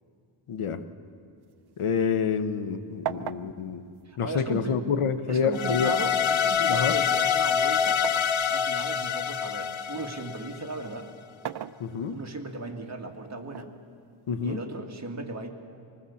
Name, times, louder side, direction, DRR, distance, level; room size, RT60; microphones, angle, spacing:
voice 1, 0.5-0.8 1.8-3.8 4.2-5.9 6.7-6.9 11.8-12.2 14.3-14.6, left 6 dB, 90° left, 10 dB, 1.2 m, -27 dB
sound 1, 1.4-2.7 3.0-5.0 5.9-8.4 8.9-10.2 11.2-12.4 13.5-14.5, right 10 dB, 50° right, 0.6 m, -40 dB
voice 2, 4.1-4.8 5.3-8.0 8.5-11.1 12.1-13.7 14.4-15.5, right 2 dB, 30° right, 3 dB, 2.1 m, -36 dB
sound 2, 5.5-10.7, left 8 dB, 70° left, 0.9 m, -26 dB
25.0 x 19.0 x 7.1 m, 2.3 s
wide cardioid pair, 100°, 49 cm